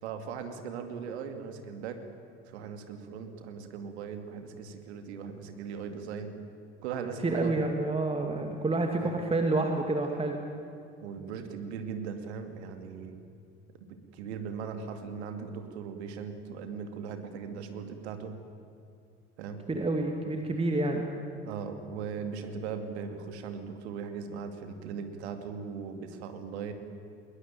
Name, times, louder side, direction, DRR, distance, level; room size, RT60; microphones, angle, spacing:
voice 1, 0.0-2.0 2.5-6.4 6.8-7.5 9.0-9.1 11.0-13.2 13.9-18.4 19.4-19.7 21.4-26.7, right 6 dB, 70° right, 7 dB, 2.5 m, -39 dB
voice 2, 7.2-10.4 19.7-21.1, right 2 dB, 15° right, 3 dB, 2.3 m, -28 dB
21.0 x 20.5 x 9.3 m, 2.5 s
figure-of-eight pair, 65°, 35 cm